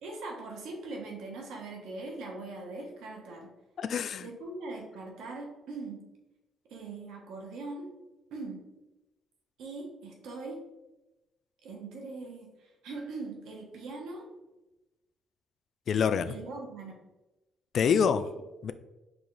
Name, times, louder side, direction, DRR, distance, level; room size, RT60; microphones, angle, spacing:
voice 1, 0.0-3.5 4.2-6.1 6.7-7.9 8.3-8.6 9.6-10.6 11.6-14.3 16.2-17.0, right 3 dB, 85° right, 1 dB, 1.1 m, -41 dB
voice 2, 3.8-4.3 15.9-16.3 17.7-18.3 18.6-18.7, left 7 dB, 60° left, 12 dB, 0.3 m, -26 dB
4.7 x 2.9 x 3.9 m, 1.0 s
cardioid pair, 90°, 0 cm